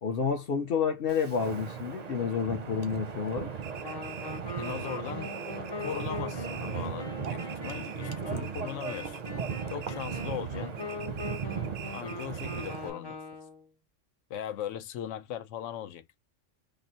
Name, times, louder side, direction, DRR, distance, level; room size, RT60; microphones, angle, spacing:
voice 1, 0.0-3.5, left 6 dB, 55° left, 0.9 m, -29 dB
Wind, 1.1-12.9, right 6 dB, 45° right, 0.6 m, -37 dB
sound 1, 3.6-7.0 7.3-8.2 8.4-10.5 10.8-12.9, right 9 dB, 85° right, 1.0 m, -45 dB
Wind instrument woodwind instrument, 3.8-13.7, left 2 dB, 20° left, 0.8 m, -42 dB
voice 2, 4.6-5.4 5.8-9.2 9.7-10.8 11.9-13.2 14.3-16.0, left 10 dB, 75° left, 0.9 m, -39 dB
3.7 x 2.1 x 4.0 m
omnidirectional pair, 1.3 m